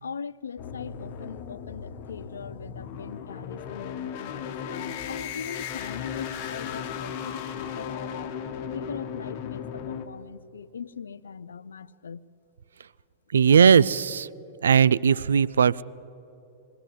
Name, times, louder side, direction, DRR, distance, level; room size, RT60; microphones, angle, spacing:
voice 1, 0.0-8.4 8.7-12.2, left 6 dB, 75° left, 0.4 m, -40 dB
sound 1, 0.6-10.1, left 8 dB, 45° left, 1.3 m, -36 dB
voice 2, 13.3-14.3 14.6-15.8, right 7 dB, 70° right, 0.3 m, -18 dB
21.5 x 16.0 x 7.7 m
figure-of-eight pair, 100°, 0 cm